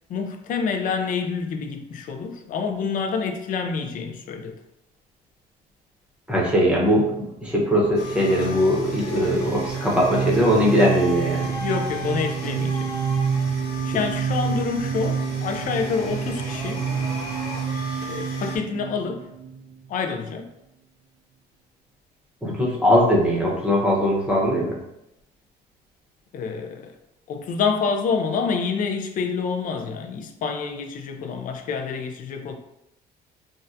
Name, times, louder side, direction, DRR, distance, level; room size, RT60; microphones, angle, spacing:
voice 1, 0.1-4.6 11.6-12.9 13.8-16.8 18.0-19.2 19.9-20.5 26.3-26.9 27.3-32.6, left 5 dB, 50° left, 0.5 m, -27 dB
voice 2, 6.3-7.1 7.4-11.4 22.4-24.7, equal, 5° right, 0.8 m, -20 dB
sound 1, 7.7-20.2, right 6 dB, 65° right, 0.4 m, -28 dB
sound 2, 7.9-18.6, left 1 dB, 75° left, 0.9 m, -36 dB
3.6 x 2.1 x 2.7 m
cardioid pair, 110°, 17 cm